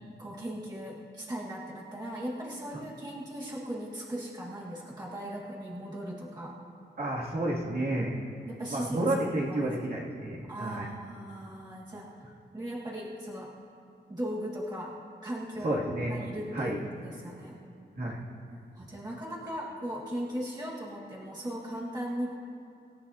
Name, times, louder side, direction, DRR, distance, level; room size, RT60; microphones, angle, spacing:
voice 1, 0.2-6.5 8.5-9.0 9.5-9.6 10.5-12.2 12.5-13.5 14.1-15.8 16.1-17.6 18.8-22.3, equal, 20° right, -5 dB, 1.8 m, -38 dB
voice 2, 7.0-8.2 8.7-10.9 15.6-16.1 16.5-16.8 17.9-18.2, right 1 dB, 60° right, -5 dB, 2.7 m, -30 dB
26.5 x 14.0 x 2.9 m, 2.5 s
wide cardioid pair, 145°, 18 cm